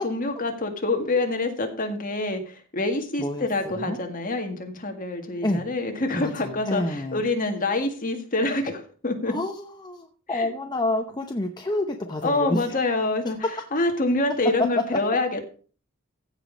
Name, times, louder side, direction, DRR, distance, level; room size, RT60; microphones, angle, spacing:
voice 1, 0.0-9.3 10.3-10.5 12.2-13.4 13.7-15.4, left 2 dB, 40° left, 4 dB, 1.9 m, -26 dB
voice 2, 6.1-7.2 9.3-12.8 14.6-14.8, left 1 dB, 20° left, 4 dB, 0.8 m, -28 dB
15.0 x 5.2 x 5.2 m, 0.40 s
head